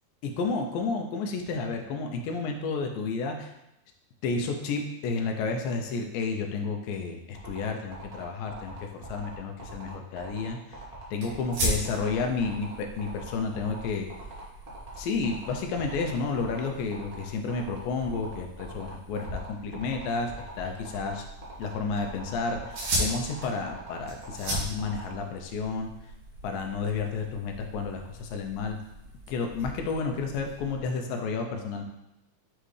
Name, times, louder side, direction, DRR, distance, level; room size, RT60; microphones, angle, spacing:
voice 1, 0.2-3.5 4.2-10.8 11.1-14.1 15.0-21.3 21.6-25.9 26.4-28.8 29.3-31.8, left 4 dB, 85° left, 3 dB, 2.4 m, -31 dB
sound 1, 7.3-25.1, right 2 dB, 40° right, 0.7 m, -44 dB
sound 2, 11.2-30.8, equal, 60° right, 3.0 m, -38 dB
9.0 x 3.7 x 3.2 m, 0.86 s
omnidirectional pair, 4.0 m